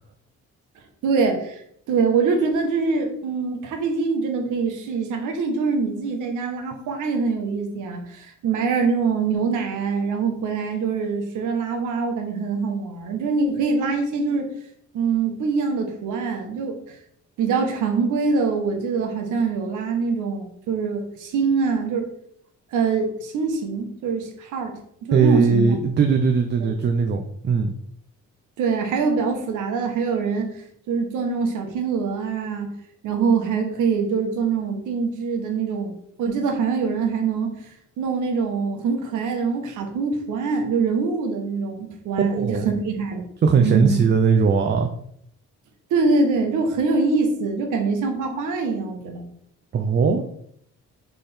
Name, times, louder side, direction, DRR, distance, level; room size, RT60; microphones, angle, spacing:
voice 1, 1.0-1.6 1.9-14.5 14.9-16.8 17.4-22.0 22.7-25.7 26.6-26.7 28.6-30.5 30.9-32.7 33.0-35.9 36.2-37.7 38.0-43.3 43.6-44.0 45.9-49.2, right 4 dB, 85° right, 4 dB, 1.0 m, -24 dB
voice 2, 25.1-27.7 42.3-42.7 43.4-44.9 49.7-50.2, right 5 dB, 35° right, 5 dB, 0.5 m, -19 dB
3.7 x 3.4 x 4.2 m, 0.69 s
cardioid pair, 90°, 30 cm